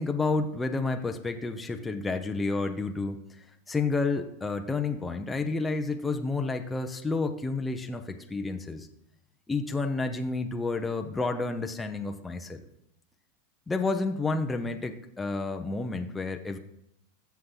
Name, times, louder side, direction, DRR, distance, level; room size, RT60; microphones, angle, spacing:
voice 1, 0.0-8.9 9.5-12.6 13.7-16.6, left 3 dB, 10° left, 4 dB, 0.7 m, -30 dB
15.5 x 5.8 x 3.9 m, 0.78 s
supercardioid pair, 125°, 0 cm